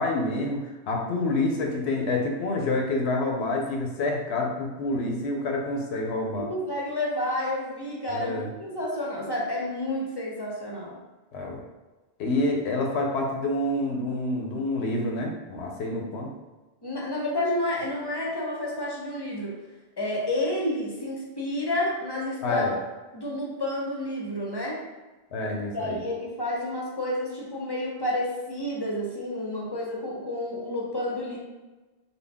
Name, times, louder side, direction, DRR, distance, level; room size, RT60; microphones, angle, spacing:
voice 1, 0.0-6.5 8.1-8.5 11.3-11.6 12.2-16.3 22.4-22.8 25.3-26.0, left 2 dB, 75° left, 1 dB, 0.9 m, -27 dB
voice 2, 6.4-11.0 16.8-19.5 20.0-22.6 23.1-24.8 25.7-31.4, left 1 dB, 25° left, -3 dB, 0.6 m, -30 dB
3.8 x 2.1 x 3.5 m, 1.2 s
omnidirectional pair, 1.1 m